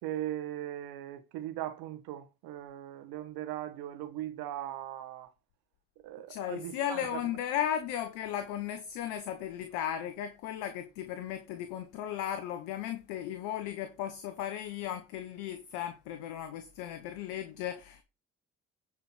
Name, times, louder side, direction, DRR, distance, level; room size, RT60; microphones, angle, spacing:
voice 1, 0.0-5.3 6.0-7.0, right 12 dB, 75° right, 1.5 m, -39 dB
voice 2, 6.3-18.0, left 10 dB, 80° left, 1.2 m, -36 dB
9.9 x 5.1 x 5.8 m
hypercardioid pair, 45°, 37 cm